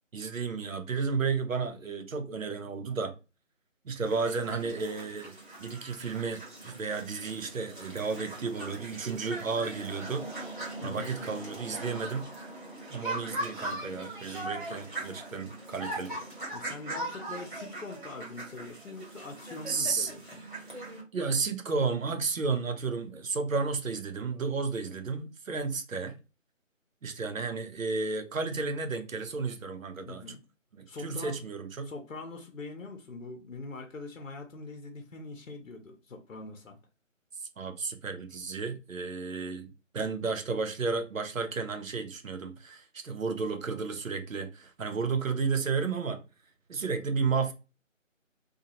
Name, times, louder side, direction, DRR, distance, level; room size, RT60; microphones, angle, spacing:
voice 1, 0.1-3.1 3.8-10.3 10.8-12.3 12.9-16.2 19.7-20.1 21.1-26.1 27.0-30.2 30.7-31.9 37.4-46.2 46.7-47.5, right 4 dB, 80° right, 0.7 m, -32 dB
sound 1, 4.0-21.0, right 2 dB, 40° right, 1.2 m, -40 dB
voice 2, 10.8-11.1 16.5-20.4 30.1-30.4 30.9-31.3 31.8-36.8, left 3 dB, 75° left, 0.7 m, -43 dB
2.7 x 2.3 x 2.9 m
figure-of-eight pair, 165°, 39 cm